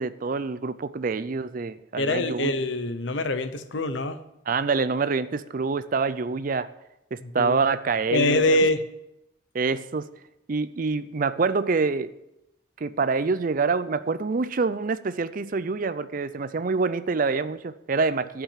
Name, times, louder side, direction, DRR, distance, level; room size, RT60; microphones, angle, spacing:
voice 1, 0.0-2.5 4.5-6.7 7.1-8.4 9.5-10.1 10.5-12.1 12.8-18.4, right 4 dB, 45° right, 14 dB, 0.4 m, -26 dB
voice 2, 2.0-4.2 7.2-7.7 8.1-8.8, left 2 dB, 65° left, 11 dB, 0.8 m, -24 dB
11.5 x 5.9 x 7.3 m, 0.87 s
head